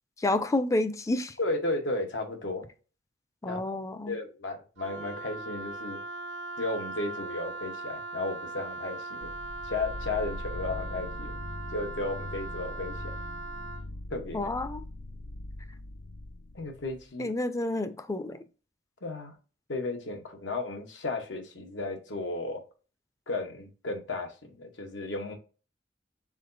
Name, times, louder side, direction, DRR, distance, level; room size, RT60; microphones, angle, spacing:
voice 1, 0.2-1.3 3.4-4.1 14.3-14.8 17.2-18.4, left 2 dB, 15° left, 0.4 m, -29 dB
voice 2, 1.4-2.7 3.5-3.6 4.1-6.0 6.6-9.3 9.6-11.3 11.7-13.1 14.1-14.5 16.5-17.3 19.0-19.3 19.7-22.6 23.3-25.4, left 2 dB, 90° left, 1.0 m, -34 dB
Wind instrument woodwind instrument, 4.8-13.8, right 2 dB, 85° right, 0.4 m, -40 dB
sound 1, 9.2-17.0, left 2 dB, 70° left, 0.5 m, -41 dB
5.0 x 3.8 x 2.6 m
head